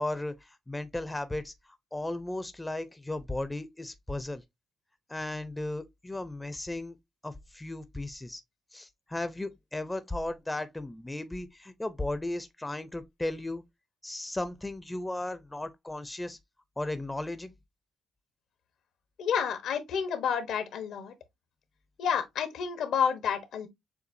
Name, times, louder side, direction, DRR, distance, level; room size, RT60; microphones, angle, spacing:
voice 1, 0.0-1.5 1.9-4.4 5.1-7.0 7.2-8.4 8.7-13.6 14.0-16.4 16.8-17.6, left 2 dB, 10° left, 0.5 m, -35 dB
voice 2, 19.2-21.1 22.0-23.7, left 7 dB, 75° left, 0.9 m, -29 dB
6.8 x 2.4 x 2.6 m
cardioid pair, 90°, 0 cm